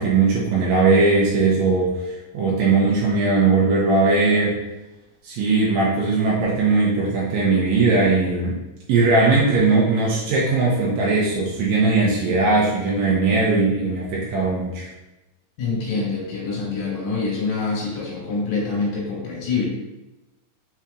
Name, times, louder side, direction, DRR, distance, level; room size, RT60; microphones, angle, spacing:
voice 1, 0.0-4.6 5.2-8.5 8.9-14.9, right 3 dB, 80° right, -4 dB, 1.7 m, -19 dB
voice 2, 15.6-19.7, left 4 dB, 75° left, -4 dB, 2.6 m, -25 dB
4.9 x 4.3 x 2.3 m, 0.99 s
omnidirectional pair, 4.0 m